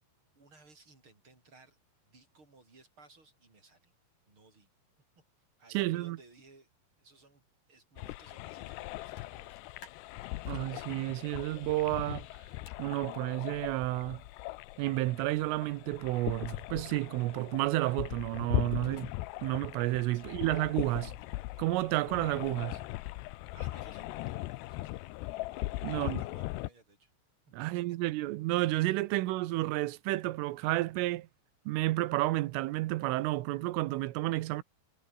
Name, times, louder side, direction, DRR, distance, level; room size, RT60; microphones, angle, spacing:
voice 1, 0.3-3.9 4.3-4.7 5.6-6.7 7.0-7.4 7.7-9.9 20.1-20.4 23.5-25.1 25.8-27.1 27.6-27.7, right 3 dB, 25° right, 6.8 m, -60 dB
voice 2, 5.8-6.2 10.5-12.3 12.8-14.2 14.8-19.1 19.4-21.1 21.6-22.8 25.8-26.2 27.5-31.3 31.7-34.6, right 18 dB, 85° right, 3.6 m, -31 dB
sound 1, 8.0-26.7, left 19 dB, 80° left, 2.5 m, -39 dB
sound 2, 8.7-8.8 9.1-10.9 12.7-12.9 16.4-16.9 18.7-19.1 20.4-21.4, left 4 dB, 45° left, 7.3 m, -56 dB
omnidirectional pair, 5.6 m